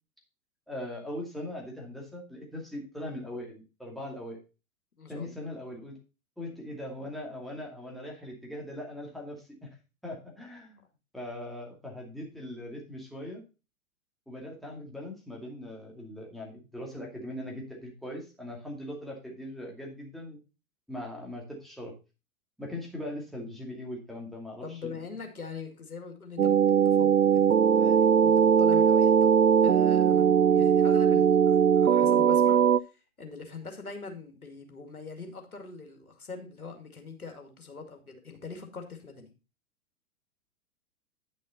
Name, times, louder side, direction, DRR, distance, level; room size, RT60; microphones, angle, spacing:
voice 1, 0.7-4.4 5.1-6.0 6.4-9.5 10.0-10.8 11.1-13.4 14.3-20.4 20.9-21.9 22.6-25.0, left 1 dB, ahead, -2 dB, 2.4 m, -40 dB
voice 2, 5.0-5.4 24.6-29.3 29.6-39.3, left 4 dB, 80° left, 4 dB, 2.3 m, -43 dB
sound 1, 26.4-32.8, right 8 dB, 85° right, 0.5 m, -20 dB
9.8 x 6.3 x 4.0 m, 0.30 s
figure-of-eight pair, 110°, 43 cm